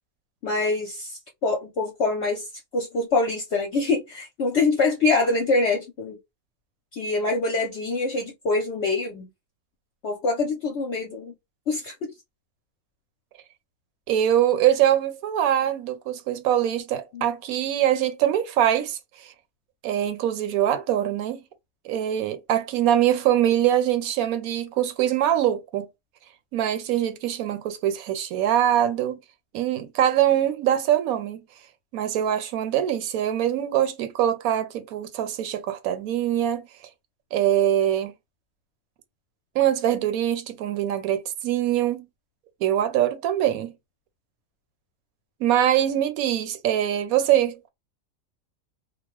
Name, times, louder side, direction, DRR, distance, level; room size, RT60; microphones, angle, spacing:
voice 1, 0.4-2.5 2.7-6.2 6.9-9.3 10.0-11.3 11.7-12.1 17.1-17.3, left 3 dB, 55° left, 0.9 m, -25 dB
voice 2, 14.1-19.0 19.8-21.4 21.8-25.9 26.5-29.2 29.5-31.4 31.9-36.6 37.3-38.1 39.5-42.1 42.6-43.7 45.4-47.7, right 11 dB, 80° right, 1.1 m, -23 dB
2.9 x 2.2 x 3.0 m
omnidirectional pair, 1.5 m